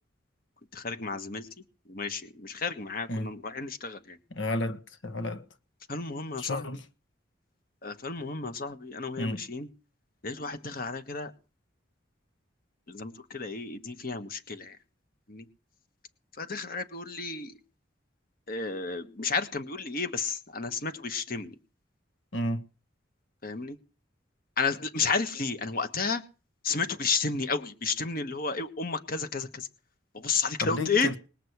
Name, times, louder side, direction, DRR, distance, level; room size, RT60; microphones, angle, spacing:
voice 1, 0.7-1.5 1.9-4.2 5.9-6.6 7.8-9.7 10.2-11.3 12.9-14.8 15.3-15.4 16.4-17.5 18.5-21.5 23.4-23.8 24.6-26.2 26.6-29.7 30.1-31.1, left 4 dB, 50° left, 1.5 m, -32 dB
voice 2, 4.3-5.4 6.4-6.8 9.2-9.4 22.3-22.6 30.6-31.2, left 1 dB, 85° left, 1.3 m, -32 dB
20.0 x 6.7 x 8.1 m
head